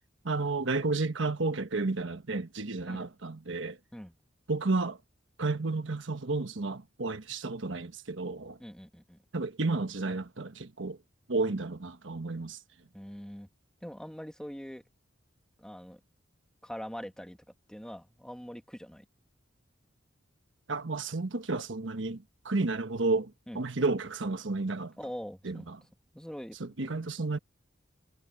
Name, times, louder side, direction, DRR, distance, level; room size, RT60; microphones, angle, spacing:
voice 1, 0.2-3.8 4.5-5.0 5.4-8.6 9.3-11.0 11.3-12.6 20.7-24.9 25.4-25.8 26.6-27.4, right 3 dB, 70° right, 1.2 m, -32 dB
voice 2, 8.6-9.2 11.4-11.6 12.9-13.5 13.8-14.8 15.6-16.0 16.6-17.4 17.7-19.1 23.5-23.6 25.0-25.7 26.1-26.9, equal, 5° left, 1.9 m, -43 dB
head